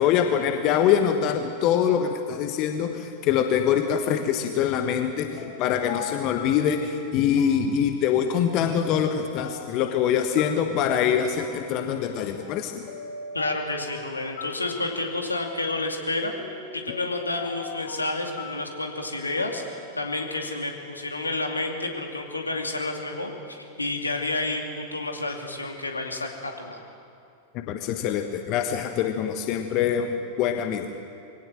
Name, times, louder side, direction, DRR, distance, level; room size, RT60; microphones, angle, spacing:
voice 1, 0.0-12.9 27.5-30.9, left 8 dB, 40° left, 7 dB, 1.2 m, -24 dB
sound 1, 5.4-20.4, left 5 dB, 55° left, 1.6 m, -43 dB
voice 2, 13.3-16.3 16.7-19.6 19.9-26.8, left 2 dB, 80° left, 2 dB, 2.5 m, -30 dB
23.5 x 17.5 x 7.6 m, 2.4 s
figure-of-eight pair, 90°, 0 cm